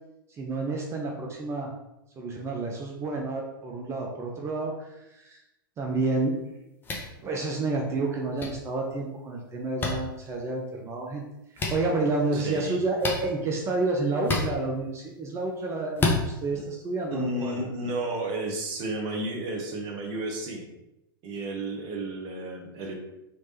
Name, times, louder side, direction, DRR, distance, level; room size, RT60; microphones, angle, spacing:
voice 1, 0.4-1.7 2.2-5.4 5.8-6.4 7.2-11.2 11.5-17.6, right 3 dB, 20° right, 0 dB, 0.5 m, -30 dB
sound 1, 6.8-7.1 8.4-8.5 9.8-9.9 11.6-11.7 13.0-13.2 14.2-14.5 16.0-16.2, left 3 dB, 15° left, 0.8 m, -26 dB
voice 2, 12.3-12.8 16.5-16.6 17.1-20.7 21.2-22.9, right 1 dB, 40° right, 2 dB, 0.9 m, -32 dB
3.3 x 3.0 x 2.8 m, 0.90 s
figure-of-eight pair, 100°, 12 cm